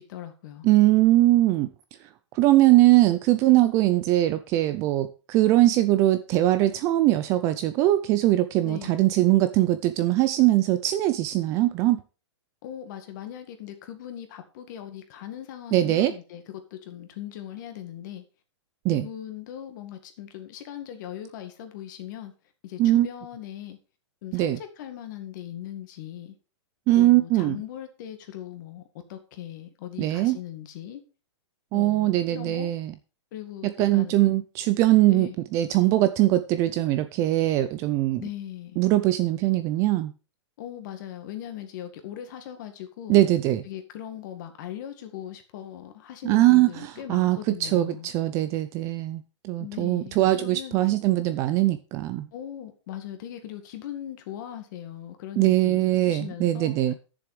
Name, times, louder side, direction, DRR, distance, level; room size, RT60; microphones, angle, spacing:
voice 1, 0.0-0.7 8.6-9.0 12.6-18.2 18.9-22.3 22.6-23.8 24.2-26.4 26.9-28.8 29.1-31.0 31.7-32.7 33.3-34.2 35.1-35.4 38.2-38.8 40.6-43.2 43.6-48.1 49.6-50.8 52.3-56.8, left 11 dB, 40° left, 1.9 m, -39 dB
voice 2, 0.6-1.7 2.3-12.0 15.7-16.1 18.8-19.1 22.8-23.1 24.3-24.6 26.9-27.6 30.0-30.4 31.7-32.9 33.6-38.2 38.8-40.1 43.1-43.6 46.2-52.3 55.4-56.9, right 15 dB, 20° right, 0.4 m, -21 dB
10.5 x 7.0 x 4.9 m
hypercardioid pair, 165°, 15 cm